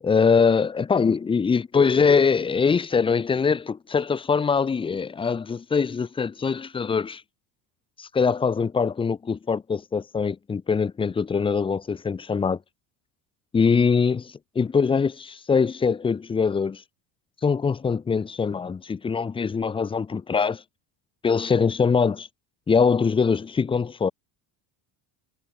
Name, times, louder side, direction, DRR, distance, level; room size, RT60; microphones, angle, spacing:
voice 1, 0.0-7.2 8.0-12.6 13.5-16.8 17.4-20.6 21.2-22.3 22.7-24.1, left 5 dB, 15° left, 0.5 m, -23 dB
cardioid pair, 145°, 42 cm